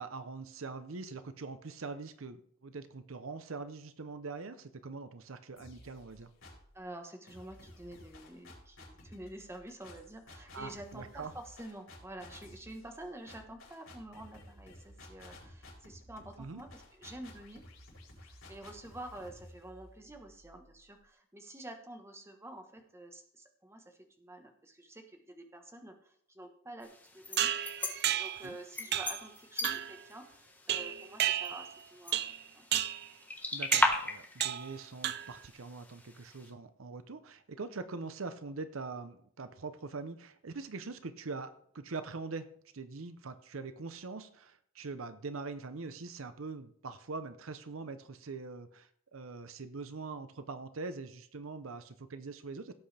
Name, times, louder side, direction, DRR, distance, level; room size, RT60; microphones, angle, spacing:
voice 1, 0.0-6.3 10.5-11.3 16.4-16.6 28.4-28.6 33.5-42.5 42.7-52.7, right 4 dB, 80° right, 11 dB, 0.8 m, -43 dB
sound 1, 5.6-6.8 7.3-21.0, left 1 dB, 80° left, 4.5 m, -54 dB
voice 2, 6.7-17.6 18.2-27.5 28.1-32.7, right 1 dB, 10° right, 4 dB, 1.2 m, -49 dB
sound 2, 26.8-36.5, left 2 dB, 10° left, 1.4 m, -38 dB
sound 3, 27.4-28.5 28.9-29.3 29.6-30.0 30.7-31.8 32.1-32.4 32.7-33.1 33.7-34.0 34.4-34.7 35.0-35.5, right 11 dB, 50° right, 0.5 m, -32 dB
17.5 x 8.1 x 3.4 m, 0.64 s
head